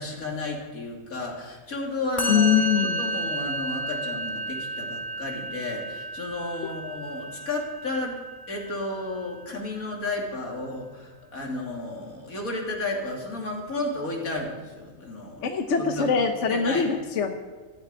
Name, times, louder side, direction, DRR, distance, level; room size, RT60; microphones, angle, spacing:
voice 1, 0.0-8.2 8.5-15.5 15.8-16.2 16.5-16.8, left 2 dB, 85° left, 0 dB, 3.4 m, -33 dB
Musical instrument, 2.2-9.5, right 1 dB, 20° left, 3.0 m, -32 dB
voice 2, 2.3-3.0 15.4-17.3, left 6 dB, 60° left, 5 dB, 1.3 m, -23 dB
15.5 x 7.9 x 9.7 m, 1.3 s
omnidirectional pair, 1.4 m